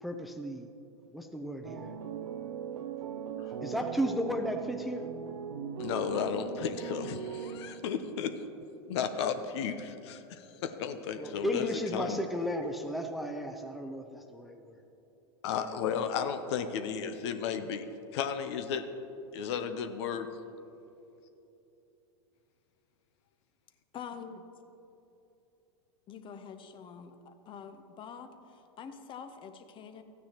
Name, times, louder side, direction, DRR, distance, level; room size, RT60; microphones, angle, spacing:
voice 1, 0.0-0.7 1.1-2.0 3.6-5.1 11.2-14.8, equal, ahead, 5 dB, 0.5 m, -34 dB
sound 1, 1.6-8.1, right 7 dB, 85° right, 0.6 m, -39 dB
voice 2, 5.8-8.3 8.9-12.2 15.4-17.8 18.1-18.9 19.3-20.3, left 7 dB, 65° left, 9 dB, 0.7 m, -34 dB
voice 3, 23.9-24.4 26.1-30.0, left 6 dB, 35° left, 8 dB, 0.8 m, -46 dB
14.0 x 9.3 x 2.9 m, 2.9 s
hypercardioid pair, 110°, 15 cm